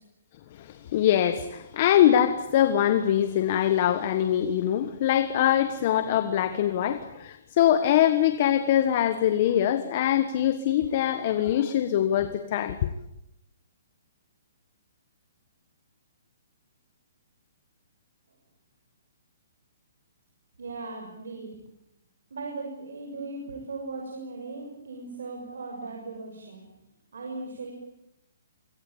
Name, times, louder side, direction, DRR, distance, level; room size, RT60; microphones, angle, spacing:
voice 1, 0.5-12.9, left 11 dB, 35° left, 10 dB, 1.4 m, -23 dB
voice 2, 20.6-21.6 22.3-26.6 27.1-27.7, right 3 dB, 80° right, 2 dB, 6.8 m, -38 dB
25.5 x 25.0 x 8.8 m, 0.84 s
hypercardioid pair, 170°, 0 cm